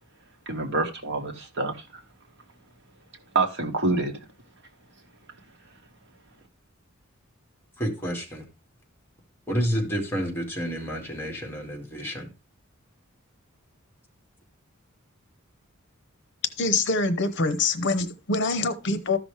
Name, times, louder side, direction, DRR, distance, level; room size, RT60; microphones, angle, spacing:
voice 1, 0.5-2.0 3.3-4.2, right 3 dB, 60° right, 1.6 m, -27 dB
voice 2, 7.8-8.4 9.5-12.3, equal, 10° left, 2.2 m, -29 dB
voice 3, 16.6-19.2, left 3 dB, 60° left, 0.9 m, -25 dB
13.5 x 6.0 x 3.3 m
head